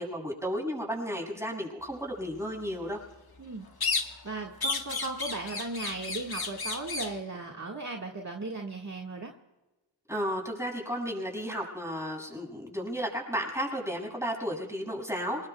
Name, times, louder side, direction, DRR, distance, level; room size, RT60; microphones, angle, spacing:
voice 1, 0.0-3.0 10.1-15.5, equal, 5° right, -2 dB, 7.3 m, -33 dB
sound 1, 3.8-4.3 4.6-7.2, left 4 dB, 55° left, 1.6 m, -32 dB
voice 2, 4.2-9.3, right 3 dB, 40° right, -1 dB, 1.9 m, -37 dB
28.0 x 20.5 x 2.4 m, 1.1 s
cardioid pair, 45°, 45 cm